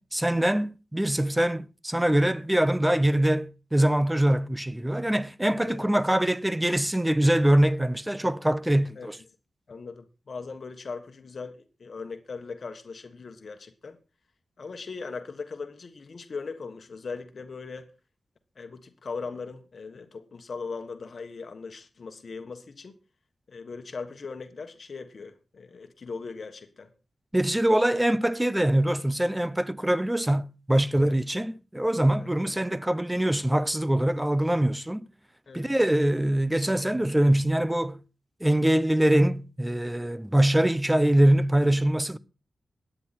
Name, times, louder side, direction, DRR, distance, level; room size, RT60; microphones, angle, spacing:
voice 1, 0.0-9.2 27.3-35.1 35.5-38.0 38.4-42.2, right 1 dB, 10° right, 0.6 m, -23 dB
voice 2, 9.7-14.0 14.6-17.9 18.6-22.9 23.5-26.9 30.9-31.1 32.2-32.3 35.5-35.7, left 4 dB, 55° left, 1.5 m, -39 dB
17.0 x 10.0 x 4.2 m
wide cardioid pair, 105°, 0 cm